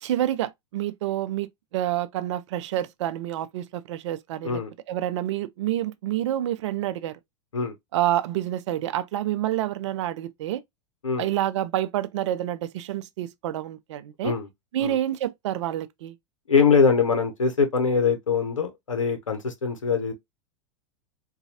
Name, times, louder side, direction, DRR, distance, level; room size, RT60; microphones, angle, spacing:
voice 1, 0.0-4.6 4.9-7.2 7.9-10.6 11.2-14.3 14.7-16.2, right 12 dB, 65° right, 0.5 m, -28 dB
voice 2, 16.5-20.1, left 5 dB, 90° left, 0.7 m, -22 dB
4.0 x 2.3 x 2.7 m
hypercardioid pair, 95°, 16 cm